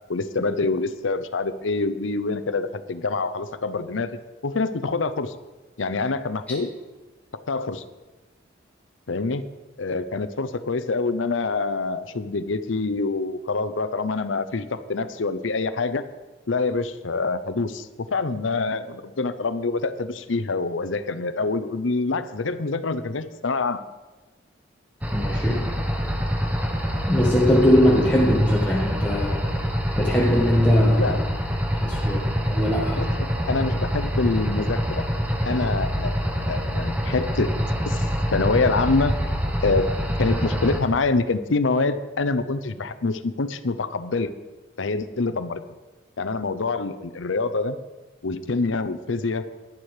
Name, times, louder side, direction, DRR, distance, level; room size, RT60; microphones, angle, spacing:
voice 1, 0.1-5.3 5.8-6.7 7.3-7.8 9.1-9.5 9.8-16.1 16.5-23.8 31.0-31.2 33.0-35.0 35.4-37.6 37.8-39.2 39.6-39.9 40.2-44.3 44.8-45.6 46.2-47.8 48.2-49.5, left 3 dB, 90° left, 13 dB, 0.7 m, -26 dB
sound 1, 25.0-40.8, equal, 10° right, 1.2 m, -25 dB
voice 2, 25.1-25.7 27.1-29.5 30.0-31.1 31.8-33.0, equal, 5° left, -5 dB, 1.5 m, -20 dB
11.5 x 11.0 x 4.9 m, 1.2 s
head